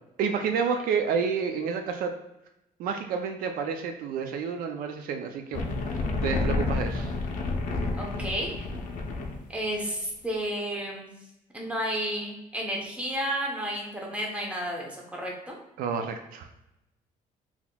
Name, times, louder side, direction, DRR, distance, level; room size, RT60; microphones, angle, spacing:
voice 1, 0.2-2.1 2.8-5.7 6.2-7.1 15.8-16.5, right 6 dB, 75° right, 6 dB, 0.4 m, -29 dB
sound 1, 5.5-9.5, left 3 dB, 60° left, 0.5 m, -30 dB
voice 2, 8.0-8.7 9.5-11.2 11.5-15.6, equal, 10° right, -1 dB, 0.8 m, -32 dB
3.8 x 2.9 x 2.2 m, 0.88 s
cardioid pair, 125°, 15 cm